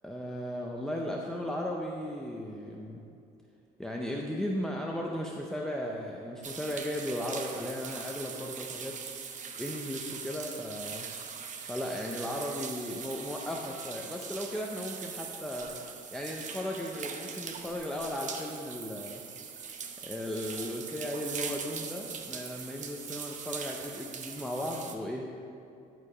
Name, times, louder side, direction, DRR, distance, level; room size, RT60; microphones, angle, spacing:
voice 1, 0.0-3.0 3.8-9.0 9.6-11.0 11.6-15.7 16.1-19.2 20.0-25.3, left 1 dB, 5° left, -1 dB, 0.6 m, -36 dB
sound 1, 6.4-24.9, right 6 dB, 50° right, 0.7 m, -41 dB
10.5 x 4.7 x 5.0 m, 2.7 s
cardioid pair, 110°, 17 cm